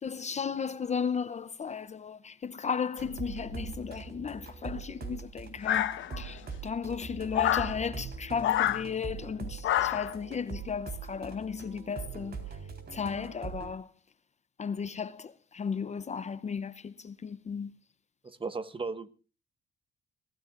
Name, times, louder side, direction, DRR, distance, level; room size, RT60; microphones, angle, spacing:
voice 1, 0.0-12.5 12.9-13.9 14.6-17.7, left 6 dB, 35° left, 0.7 m, -35 dB
sound 1, 3.0-13.7, right 5 dB, 55° right, 4.0 m, -42 dB
sound 2, 5.6-6.4 7.3-7.7 8.4-8.8 9.6-10.1, left 12 dB, 75° left, 1.0 m, -27 dB
voice 2, 18.2-19.1, right 4 dB, 25° right, 1.3 m, -36 dB
27.0 x 15.0 x 2.5 m
cardioid pair, 90°, 20 cm